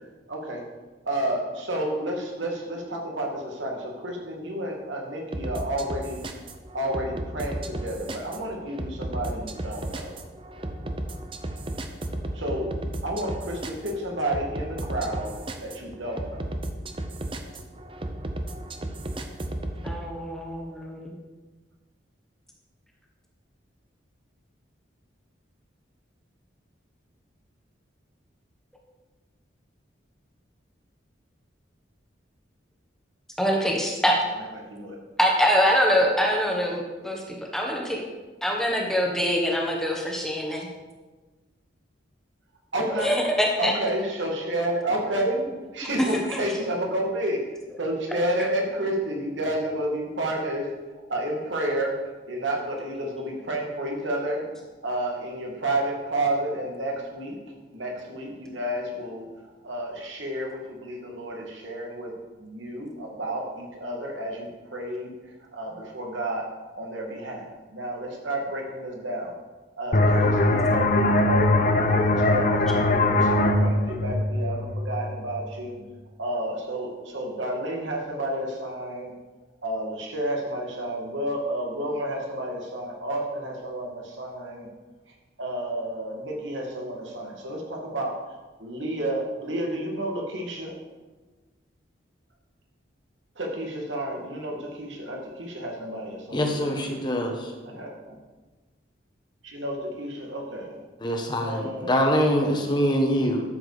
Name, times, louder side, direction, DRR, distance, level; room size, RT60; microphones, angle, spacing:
voice 1, 0.3-0.6 1.1-6.2 6.7-10.2 12.3-12.7 13.0-16.4 34.3-34.4 34.7-35.0 42.7-43.2 43.6-45.4 45.7-47.4 47.8-50.7 51.1-52.0 52.3-54.5 54.8-57.4 57.7-59.2 59.6-62.1 62.4-65.1 65.5-69.4 69.8-75.7 76.2-79.1 79.6-84.7 85.4-90.8 93.4-97.0 97.6-98.2 99.4-100.8 101.4-102.0, right 1 dB, 80° right, 0 dB, 2.4 m, -31 dB
sound 1, 5.3-20.0, right 1 dB, 25° right, 0.7 m, -34 dB
voice 2, 19.8-21.1 33.4-34.1 35.2-37.2 37.5-38.0 38.4-40.7 43.0-43.7 46.0-46.4, equal, ahead, -1 dB, 1.4 m, -24 dB
sound 2, 69.9-75.3, left 2 dB, 45° left, 0.8 m, -21 dB
voice 3, 96.3-97.5 101.0-103.4, equal, 25° left, 2 dB, 1.3 m, -24 dB
12.0 x 7.3 x 5.1 m, 1.2 s
head